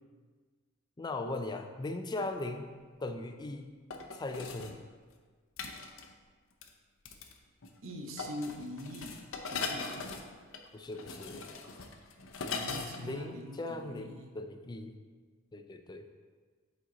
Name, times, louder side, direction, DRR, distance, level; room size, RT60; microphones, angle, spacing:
voice 1, 1.0-2.7 3.0-3.7 4.1-4.8 10.7-11.5 13.0-15.0 15.5-16.1, left 2 dB, 20° left, 6 dB, 0.4 m, -39 dB
sound 1, 2.5-2.6 3.9-4.7 5.6-6.1 6.6-6.7 7.1-7.4 7.6-7.9 8.2-13.0 13.3-13.4, left 4 dB, 70° left, 0.6 m, -40 dB
voice 2, 7.8-10.0 12.4-14.4, left 1 dB, 65° right, 2 dB, 0.8 m, -43 dB
7.4 x 4.4 x 3.9 m, 1.5 s
head